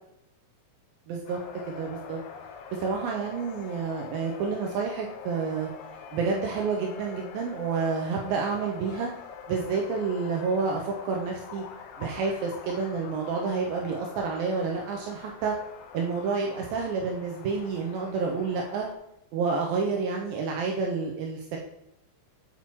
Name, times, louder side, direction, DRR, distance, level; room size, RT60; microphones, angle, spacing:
voice 1, 1.1-1.4 1.7-2.2 2.7-5.7 6.1-9.1 9.5-11.6 12.0-15.6 15.9-18.9 19.3-21.6, right 5 dB, 85° right, 0 dB, 2.2 m, -29 dB
sound 1, 1.3-19.0, left 7 dB, 85° left, 2.6 m, -44 dB
7.5 x 5.5 x 2.9 m, 0.82 s
omnidirectional pair, 4.6 m